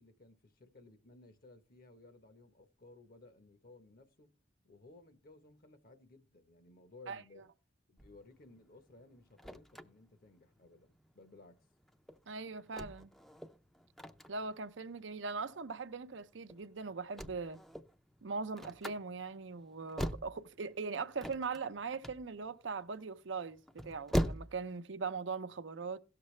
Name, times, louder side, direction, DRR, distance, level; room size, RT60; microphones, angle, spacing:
voice 1, 0.0-4.3 4.6-7.4 7.9-11.7, left 2 dB, 55° left, 1.0 m, -59 dB
sound 1, 8.0-24.8, equal, ahead, 0.5 m, -42 dB
voice 2, 12.3-13.1 14.3-17.6 18.2-26.0, right 4 dB, 80° right, 0.7 m, -40 dB
17.0 x 6.7 x 3.2 m
head